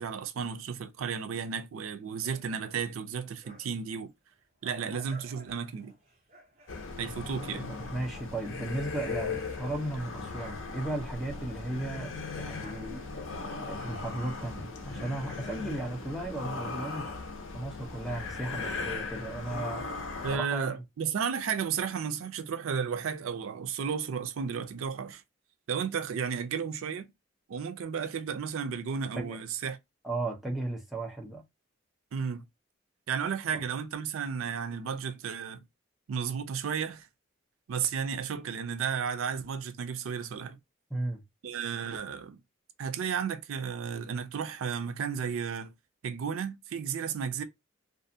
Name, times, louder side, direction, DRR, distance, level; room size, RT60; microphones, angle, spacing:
voice 1, 0.0-4.1 4.6-5.9 7.0-7.7 20.2-25.2 25.7-27.1 27.5-29.8 32.1-32.4 33.1-35.6 36.1-37.1 37.7-40.6 41.4-42.4 42.8-45.7 46.0-47.4, right 6 dB, 85° right, 0.4 m, -33 dB
sound 1, 2.1-3.9 4.3-11.9 12.2-16.4, equal, 35° right, 0.9 m, -55 dB
sound 2, 6.7-20.4, left 4 dB, 70° left, 0.6 m, -38 dB
voice 2, 7.7-12.1 12.4-13.0 13.6-17.1 17.5-20.0 20.3-20.8 29.2-29.4 30.0-31.4 33.5-33.6 40.9-41.2, right 2 dB, ahead, 0.5 m, -35 dB
2.6 x 2.3 x 2.5 m
head